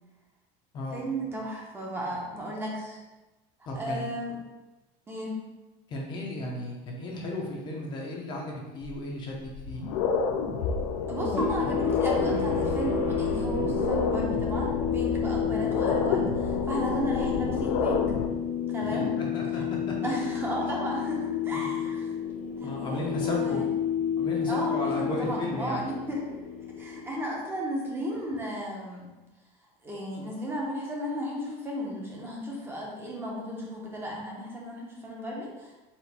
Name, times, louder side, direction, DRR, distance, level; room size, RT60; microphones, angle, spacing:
voice 1, 0.9-3.0 3.7-4.4 5.1-5.3 11.1-18.0 18.7-19.1 20.0-22.1 22.6-23.6 24.5-26.3 26.8-29.1 29.8-35.8, right 1 dB, 15° right, -3 dB, 0.6 m, -34 dB
voice 2, 3.7-4.0 5.9-9.8 18.8-20.0 21.5-21.7 22.6-23.6 24.2-25.8, left 1 dB, 25° left, -1 dB, 0.5 m, -34 dB
sound 1, 8.8-8.9 9.5-18.3, left 5 dB, 90° left, 0.5 m, -29 dB
sound 2, 11.2-27.5, left 7 dB, 55° left, 1.0 m, -30 dB
4.2 x 2.4 x 4.1 m, 1.1 s
cardioid pair, 175°, 17 cm